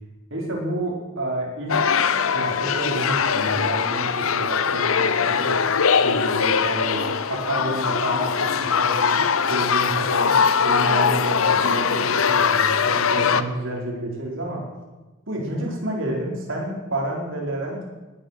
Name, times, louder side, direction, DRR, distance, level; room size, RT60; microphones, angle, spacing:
voice 1, 0.3-1.8 2.2-5.6 6.0-9.2 9.5-10.4 10.6-14.6 15.3-17.8, right 1 dB, 65° right, -1 dB, 4.7 m, -29 dB
sound 1, 1.7-13.4, left 6 dB, 85° left, 0.8 m, -21 dB
20.0 x 10.5 x 6.7 m, 1.2 s
head